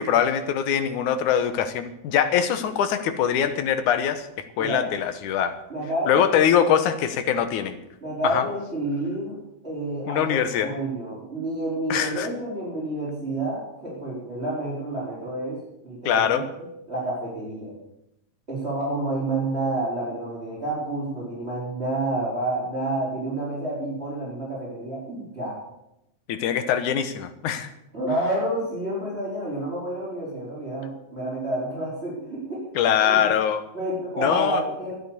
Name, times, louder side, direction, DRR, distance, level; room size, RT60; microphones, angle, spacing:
voice 1, 0.0-4.3 4.6-5.6 6.1-7.8 8.2-8.5 10.1-10.7 11.9-12.3 16.1-16.4 26.3-27.7 32.8-33.6 34.2-34.6, left 8 dB, 85° left, 10 dB, 2.5 m, -23 dB
voice 2, 5.7-6.4 8.0-9.4 9.6-17.7 18.5-25.6 27.9-32.6 33.0-33.3 33.7-35.0, right 1 dB, 20° right, -6 dB, 5.3 m, -29 dB
13.0 x 9.0 x 8.3 m, 0.84 s
omnidirectional pair, 3.5 m